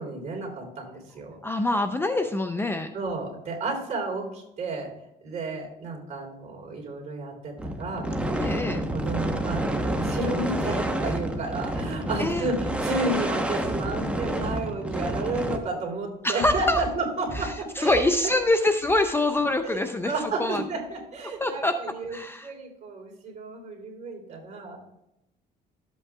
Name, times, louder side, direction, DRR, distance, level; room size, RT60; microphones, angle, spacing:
voice 1, 0.0-1.7 2.9-4.9 5.2-18.1 19.6-22.2 22.4-24.8, right 2 dB, 45° right, 0 dB, 3.7 m, -32 dB
voice 2, 1.4-2.9 8.4-8.8 12.2-12.5 16.2-16.8 17.3-20.1 20.4-20.6 21.4-21.8 22.1-22.5, left 2 dB, 15° left, 7 dB, 0.5 m, -25 dB
sound 1, 7.6-15.6, right 1 dB, 5° right, 1.0 m, -29 dB
sound 2, 16.4-19.7 20.2-20.3, right 1 dB, 25° right, 2.7 m, -39 dB
12.5 x 8.2 x 2.4 m, 0.87 s
cardioid pair, 110°, 17 cm